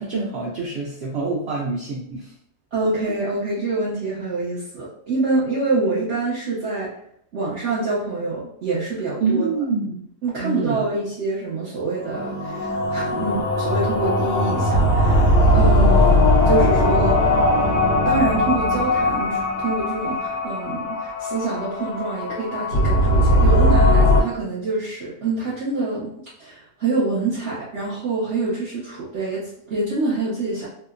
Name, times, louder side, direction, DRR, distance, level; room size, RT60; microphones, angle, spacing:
voice 1, 0.0-2.3 9.2-10.0 10.4-10.8 15.9-16.0, right 4 dB, 80° right, -5 dB, 0.5 m, -26 dB
voice 2, 2.7-6.9 7.3-9.5 10.2-16.2 16.4-17.2 18.0-26.1 26.4-30.7, right 3 dB, 55° right, -9 dB, 1.0 m, -26 dB
sound 1, 12.0-24.2, left 1 dB, 85° left, 1.2 m, -19 dB
2.8 x 2.0 x 2.4 m, 0.69 s
omnidirectional pair, 1.7 m